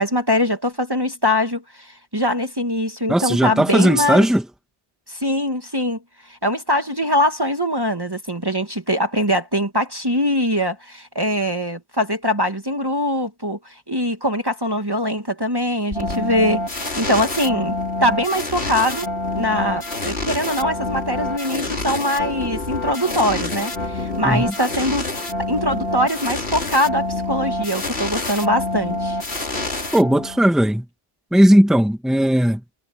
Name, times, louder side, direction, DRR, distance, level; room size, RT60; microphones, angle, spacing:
voice 1, 0.0-4.3 5.1-6.0 6.3-19.1 19.3-25.1 25.5-29.2, left 1 dB, 20° right, 1.8 m, -22 dB
voice 2, 3.1-4.4 24.2-24.4 29.9-30.8 31.3-32.6, right 1 dB, ahead, 1.7 m, -16 dB
sound 1, 15.9-30.6, left 2 dB, 80° left, 3.5 m, -27 dB
omnidirectional pair, 1.1 m